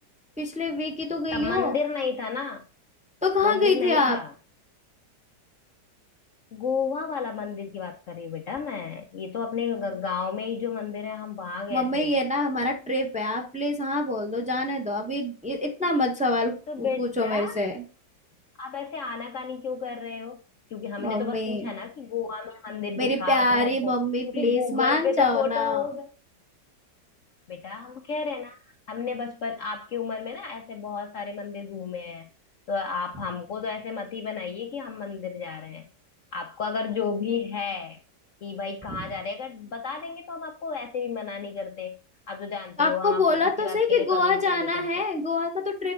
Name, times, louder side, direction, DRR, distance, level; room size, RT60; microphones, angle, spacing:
voice 1, 0.4-1.8 3.2-4.2 11.7-17.8 21.0-21.7 23.0-25.8 42.8-45.9, left 2 dB, 5° right, 3 dB, 0.9 m, -25 dB
voice 2, 1.3-2.6 3.4-4.3 6.5-12.1 16.7-17.6 18.6-20.4 20.7-23.9 24.3-26.1 27.5-28.6 28.9-32.3 32.7-35.9 36.3-38.0 38.4-41.9 42.3-43.2 43.6-44.9, left 5 dB, 55° left, 4 dB, 0.9 m, -32 dB
8.8 x 3.7 x 4.6 m, 0.36 s
omnidirectional pair, 1.9 m